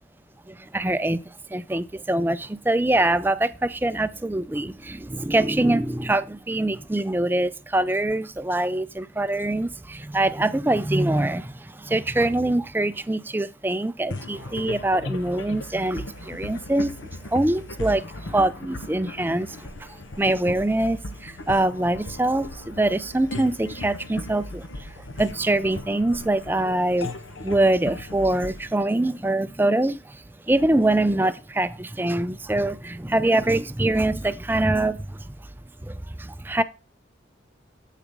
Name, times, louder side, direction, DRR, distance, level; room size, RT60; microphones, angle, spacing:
voice 1, 0.5-1.2 1.5-16.9 17.2-24.6 25.2-27.1 27.4-35.2 35.8-36.6, right 1 dB, 10° right, 0.4 m, -24 dB
sound 1, 14.1-29.7, left 2 dB, 85° left, 1.1 m, -37 dB
8.4 x 6.8 x 3.7 m
head